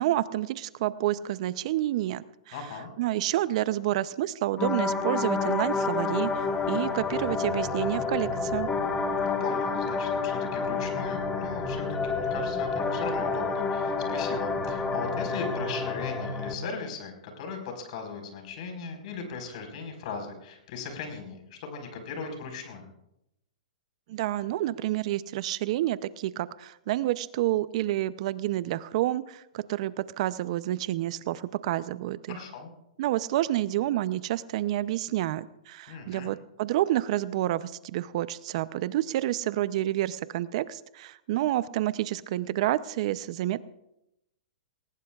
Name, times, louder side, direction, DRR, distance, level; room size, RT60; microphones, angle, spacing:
voice 1, 0.0-2.6 3.0-8.7 24.1-32.4 33.0-43.6, right 14 dB, 50° right, 16 dB, 0.6 m, -29 dB
voice 2, 2.5-2.9 9.2-22.9 32.3-32.7 35.9-36.3, left 5 dB, 55° left, 3 dB, 4.6 m, -38 dB
sound 1, 4.6-16.5, left 4 dB, 15° left, 1.5 m, -29 dB
20.5 x 19.0 x 2.4 m, 0.85 s
hypercardioid pair, 135°, 4 cm